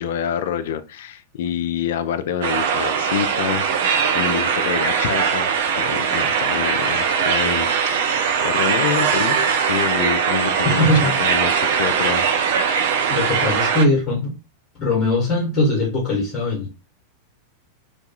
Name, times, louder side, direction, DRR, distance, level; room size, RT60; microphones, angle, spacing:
voice 1, 0.0-12.3, left 8 dB, 55° left, 0.3 m, -27 dB
sound 1, 2.4-13.9, right 6 dB, 55° right, 0.3 m, -20 dB
voice 2, 10.6-11.2 13.1-14.3 14.8-16.7, left 1 dB, 35° left, 0.9 m, -20 dB
2.3 x 2.2 x 2.7 m
figure-of-eight pair, 90°, 0 cm